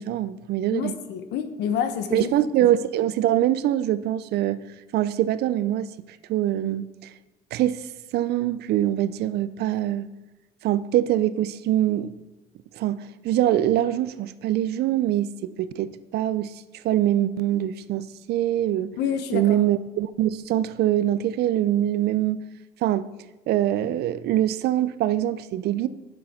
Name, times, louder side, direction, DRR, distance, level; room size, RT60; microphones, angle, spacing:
voice 1, 0.0-1.0 2.1-4.6 4.9-7.1 7.5-7.9 8.1-10.1 10.6-12.1 12.7-19.0 19.3-22.4 22.8-23.1 23.5-25.9, right 12 dB, 75° right, 0.6 m, -24 dB
voice 2, 0.7-2.3 19.0-19.6, left 8 dB, 80° left, 1.1 m, -28 dB
9.6 x 7.8 x 5.7 m
cardioid pair, 110°, 17 cm